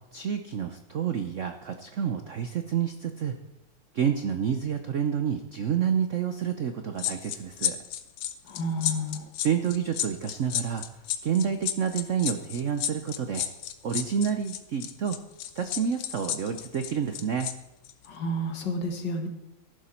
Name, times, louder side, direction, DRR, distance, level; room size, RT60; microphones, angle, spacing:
voice 1, 0.1-3.3 3.9-7.8 9.4-10.8 11.2-13.5 13.8-15.2 15.6-17.5, right 7 dB, 70° right, 7 dB, 0.7 m, -29 dB
sound 1, 7.0-17.5 17.8-18.1, left 11 dB, 85° left, 1.7 m, -32 dB
voice 2, 8.5-9.2 18.1-19.3, equal, 60° left, 4 dB, 2.0 m, -30 dB
14.5 x 11.5 x 4.4 m, 0.98 s
omnidirectional pair, 2.3 m